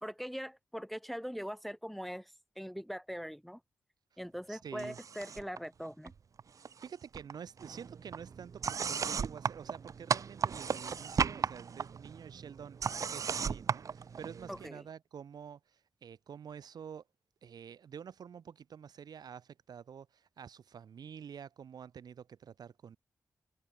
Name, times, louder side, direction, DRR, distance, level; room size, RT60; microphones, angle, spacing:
voice 1, 0.0-3.6 4.2-6.1 14.5-14.8, equal, ahead, 0.6 m, -41 dB
voice 2, 4.5-5.0 6.6-17.0 17.4-23.0, right 7 dB, 80° right, 1.1 m, -48 dB
sound 1, 4.8-5.6 5.8-6.9 7.1-14.7, right 6 dB, 55° right, 0.6 m, -36 dB
wide cardioid pair, 115°, 7 cm